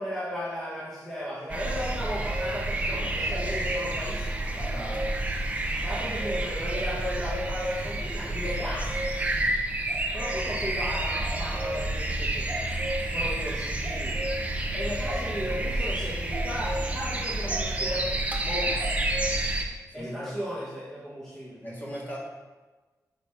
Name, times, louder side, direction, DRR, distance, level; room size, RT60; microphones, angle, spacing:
voice 1, 0.0-4.3 5.8-8.9 10.1-12.5 13.1-14.2 14.7-18.1 18.5-18.9 19.9-21.7, equal, 5° left, -8 dB, 1.6 m, -35 dB
sound 1, 1.5-19.6, right 1 dB, 20° right, 0.8 m, -29 dB
voice 2, 4.5-5.2 19.9-20.4 21.6-22.2, equal, 30° left, -6 dB, 2.7 m, -38 dB
6.7 x 5.0 x 6.1 m, 1.2 s
wide cardioid pair, 130°, 7 cm